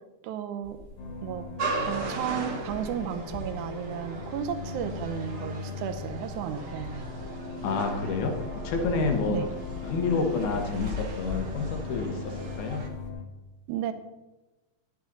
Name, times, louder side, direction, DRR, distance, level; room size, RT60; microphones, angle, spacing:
voice 1, 0.2-0.9 1.2-1.5 1.8-7.1 9.3-9.5 13.7-13.9, right 9 dB, 85° right, 9 dB, 2.2 m, -33 dB
sound 1, 0.6-13.1, left 5 dB, 30° left, 1.0 m, -42 dB
sound 2, 1.0-13.2, left 4 dB, 70° left, 2.6 m, -41 dB
sound 3, 1.6-12.9, right 2 dB, 50° right, 1.4 m, -38 dB
voice 2, 7.6-8.4 8.6-9.4 9.8-12.8, left 4 dB, 85° left, 4 dB, 2.7 m, -29 dB
11.0 x 8.0 x 4.1 m, 1.1 s
omnidirectional pair, 3.4 m